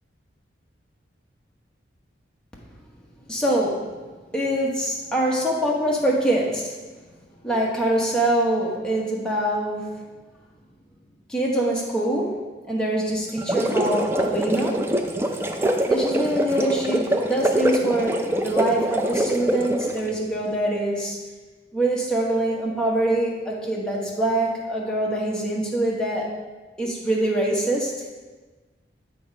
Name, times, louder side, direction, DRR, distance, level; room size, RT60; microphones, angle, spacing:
voice 1, 3.3-4.0 4.3-6.8 7.4-9.9 11.3-12.4 12.7-14.8 15.9-21.2 21.7-26.3 26.8-27.9, right 1 dB, 5° left, -4 dB, 1.1 m, -24 dB
sound 1, 13.3-20.1, right 1 dB, 15° right, 0.4 m, -24 dB
7.8 x 3.8 x 5.1 m, 1.3 s
head